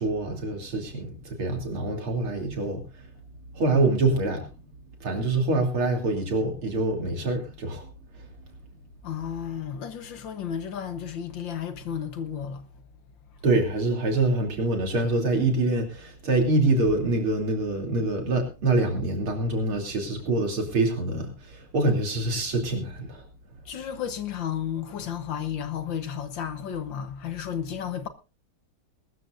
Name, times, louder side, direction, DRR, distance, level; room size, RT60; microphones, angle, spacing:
voice 1, 0.0-3.1 3.5-4.5 5.0-7.9 8.1-8.3 13.4-23.2, right 2 dB, 75° right, 3.9 m, -25 dB
voice 2, 9.0-12.7 23.7-28.1, left 8 dB, 65° left, 1.8 m, -33 dB
21.5 x 13.5 x 2.6 m
omnidirectional pair, 2.3 m